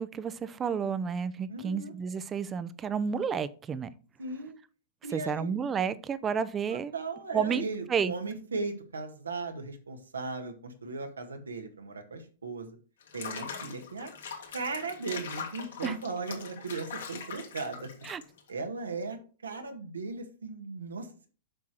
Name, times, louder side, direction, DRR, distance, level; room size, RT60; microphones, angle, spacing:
voice 1, 0.0-3.9 5.1-6.9 7.3-7.6 7.9-8.1 15.8-15.9 18.0-18.2, right 6 dB, 20° right, 15 dB, 0.7 m, -31 dB
voice 2, 1.5-1.9 4.2-4.6 5.0-5.5 6.7-12.8 13.1-14.1 14.5-17.9 18.5-21.3, right 3 dB, 90° right, 5 dB, 1.8 m, -37 dB
Water / Bathtub (filling or washing), 13.0-18.5, left 6 dB, 75° left, 2.7 m, -42 dB
7.7 x 6.1 x 4.5 m, 0.37 s
hypercardioid pair, 115°, 0 cm